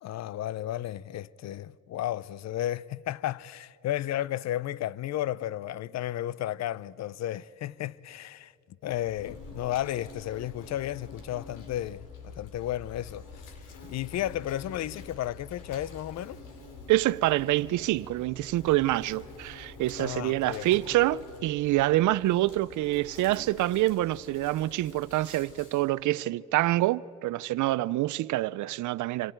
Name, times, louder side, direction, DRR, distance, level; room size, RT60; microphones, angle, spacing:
voice 1, 0.0-8.5 8.8-13.5 13.9-16.4 20.0-20.7, left 13 dB, 60° left, 0.5 m, -33 dB
Insect, 8.9-25.9, left 3 dB, 90° left, 3.5 m, -47 dB
voice 2, 16.9-29.3, right 16 dB, 75° right, 0.5 m, -26 dB
28.0 x 25.5 x 4.5 m
cardioid pair, 90°, 30 cm